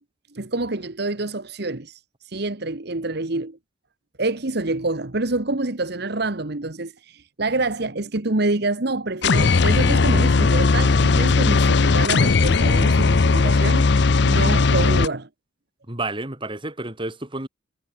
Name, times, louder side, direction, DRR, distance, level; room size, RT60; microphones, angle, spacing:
voice 1, 0.3-2.0 2.3-3.6 4.2-13.9 14.2-15.3, right 2 dB, 60° right, 1.5 m, -27 dB
sound 1, 9.2-15.1, left 4 dB, 65° left, 0.6 m, -17 dB
voice 2, 15.9-17.5, right 2 dB, 25° right, 2.7 m, -30 dB
head